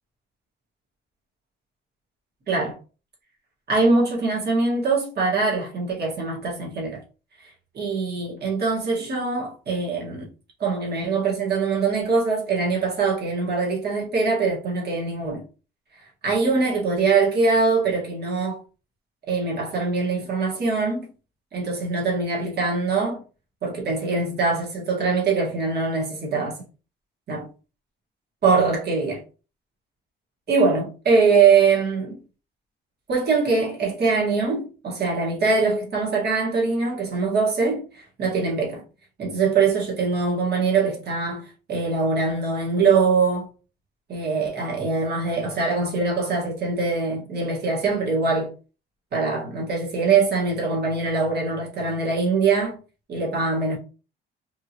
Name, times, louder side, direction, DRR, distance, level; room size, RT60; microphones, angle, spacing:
voice 1, 2.5-2.8 3.7-7.0 7.4-10.3 10.6-15.4 16.2-18.6 19.3-21.1 21.5-23.2 23.6-26.6 27.3-27.5 28.4-29.2 30.5-32.2 33.1-38.8 39.2-43.5 44.1-48.5 49.1-52.8 53.1-53.8, right 4 dB, 55° right, 1.6 m, -23 dB
3.5 x 2.7 x 2.9 m
cardioid pair, 90°, 20 cm